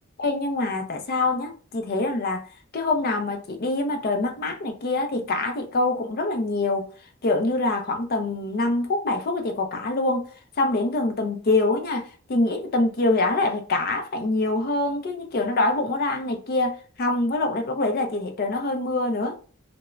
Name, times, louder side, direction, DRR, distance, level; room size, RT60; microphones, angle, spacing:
voice 1, 0.2-2.5 2.7-6.9 7.2-10.3 10.6-19.4, left 2 dB, 45° left, 0.5 m, -25 dB
2.3 x 2.1 x 3.0 m
head